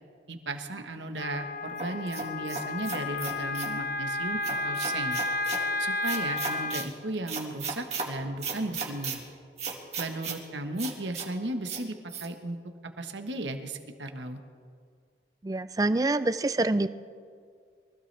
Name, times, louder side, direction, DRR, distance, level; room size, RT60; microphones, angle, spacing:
voice 1, 0.3-5.2 5.8-9.2 10.0-12.6 13.0-14.4, right 1 dB, 85° right, 6 dB, 1.3 m, -35 dB
Wind instrument woodwind instrument, 1.2-6.9, left 2 dB, 50° left, 0.5 m, -32 dB
sound 1, 1.8-3.7 4.4-5.6 6.0-6.9 7.3-8.1 8.4-9.2 9.6-10.4 10.8-11.3 11.7-11.8 12.1-12.3, right 5 dB, 35° right, 2.1 m, -35 dB
voice 2, 15.4-16.9, right 2 dB, 20° right, 13 dB, 0.4 m, -26 dB
24.0 x 15.5 x 3.4 m, 2.1 s
head